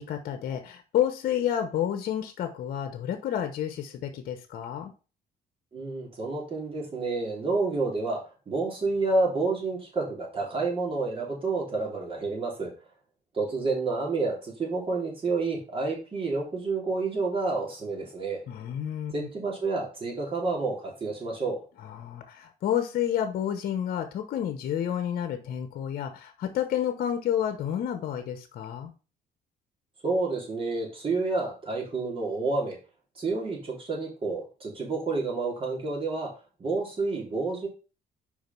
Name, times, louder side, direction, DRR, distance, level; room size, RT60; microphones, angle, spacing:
voice 1, 0.0-4.9 18.5-19.3 21.8-28.9, left 10 dB, 60° left, 8 dB, 1.0 m, -30 dB
voice 2, 5.7-8.2 8.5-12.7 13.3-18.4 19.1-21.6 30.0-32.8 33.2-36.3 36.6-37.7, right 3 dB, 30° right, -2 dB, 3.3 m, -29 dB
5.1 x 5.0 x 5.3 m, 0.34 s
cardioid pair, 110°, 17 cm